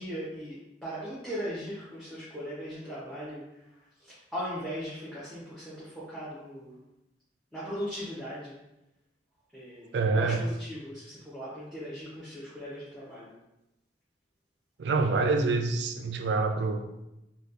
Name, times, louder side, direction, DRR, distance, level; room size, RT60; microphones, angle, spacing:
voice 1, 0.0-6.8 7.5-8.5 9.5-13.3, equal, ahead, -10 dB, 0.7 m, -39 dB
voice 2, 9.9-10.4 14.8-16.9, right 3 dB, 70° right, 6 dB, 0.3 m, -26 dB
4.1 x 2.2 x 2.4 m, 0.90 s
head